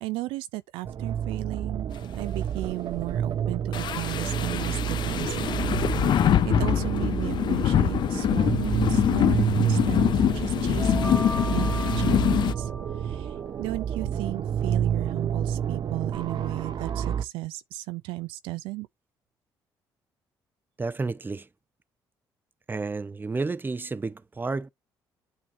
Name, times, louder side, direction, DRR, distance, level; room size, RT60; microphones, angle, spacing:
voice 1, 0.0-11.3 11.5-11.7 11.9-12.7 13.0-13.3 13.6-18.9, right 20 dB, 85° right, 0.4 m, -35 dB
sound 1, 0.8-17.2, right 8 dB, 55° right, 0.7 m, -29 dB
sound 2, 3.7-12.5, left 11 dB, 60° left, 0.4 m, -24 dB
sound 3, 10.8-13.6, left 1 dB, 10° left, 2.6 m, -37 dB
voice 2, 20.8-21.5 22.7-24.7, right 3 dB, 25° right, 0.8 m, -31 dB
8.7 x 5.4 x 2.6 m
supercardioid pair, 65°, 9 cm